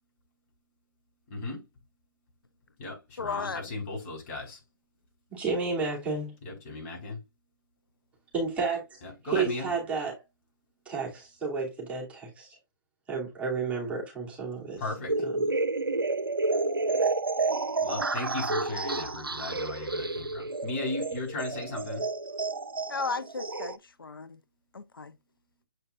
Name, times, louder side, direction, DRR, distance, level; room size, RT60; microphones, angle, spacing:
voice 1, 1.3-1.6 2.8-4.6 6.4-7.2 9.0-9.7 14.8-15.2 17.8-22.0, left 2 dB, 40° left, 4.5 m, -36 dB
voice 2, 3.2-3.7 22.9-24.4 24.7-25.1, left 4 dB, 80° left, 0.5 m, -35 dB
voice 3, 5.3-6.3 8.3-10.2 10.9-12.6 13.1-14.8 15.2-15.3, right 4 dB, 10° right, 2.7 m, -31 dB
sound 1, 15.1-23.8, right 3 dB, 90° right, 0.6 m, -30 dB
7.7 x 5.5 x 2.4 m
figure-of-eight pair, 130°, 12 cm